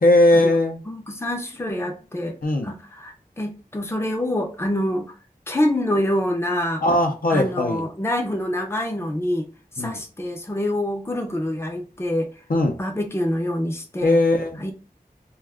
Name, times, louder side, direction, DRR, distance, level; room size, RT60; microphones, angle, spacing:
voice 1, 0.0-0.8 2.4-2.7 6.8-7.9 9.8-10.0 12.5-12.8 14.0-14.6, left 1 dB, 65° left, 0.6 m, -19 dB
voice 2, 0.9-2.4 2.6-5.1 5.5-6.8 7.3-9.5 9.8-12.3 12.8-14.2 14.6-14.7, left 1 dB, 15° left, 0.6 m, -26 dB
2.4 x 2.3 x 3.4 m
wide cardioid pair, 50°, 16 cm